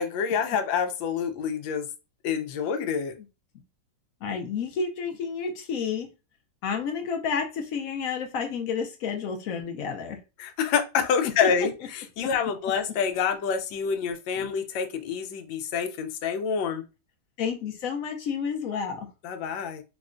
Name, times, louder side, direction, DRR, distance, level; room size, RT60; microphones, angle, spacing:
voice 1, 0.0-1.9 2.2-3.1 10.4-16.8 19.2-19.8, left 6 dB, 90° left, 1.3 m, -27 dB
voice 2, 4.2-6.1 6.6-10.2 11.2-11.5 14.4-14.5 17.4-19.1, left 6 dB, 70° left, 0.8 m, -30 dB
4.7 x 2.1 x 2.4 m
omnidirectional pair, 2.0 m